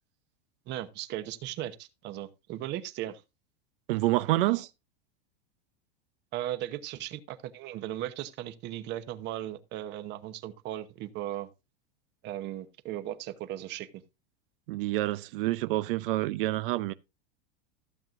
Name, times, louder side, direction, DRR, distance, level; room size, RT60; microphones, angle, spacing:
voice 1, 0.7-3.2 6.3-11.5 12.2-14.0, right 13 dB, 35° right, 1.0 m, -37 dB
voice 2, 3.9-4.7 14.7-16.9, right 17 dB, 65° right, 0.6 m, -27 dB
15.0 x 7.5 x 2.5 m
supercardioid pair, 150°, 30 cm